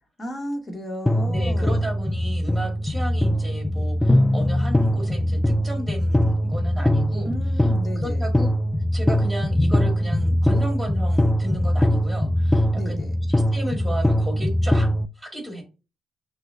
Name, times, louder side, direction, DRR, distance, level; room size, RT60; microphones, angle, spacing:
voice 1, 0.2-1.9 7.2-8.3 12.7-13.1, equal, 30° left, 2 dB, 1.3 m, -34 dB
sound 1, 1.1-15.1, left 1 dB, 5° left, 0.3 m, -21 dB
voice 2, 1.2-7.7 8.0-8.5 8.9-13.0 13.5-14.9 15.2-15.6, right 1 dB, 10° right, 0 dB, 2.2 m, -34 dB
6.0 x 2.2 x 2.7 m, 0.31 s
hypercardioid pair, 40°, 0 cm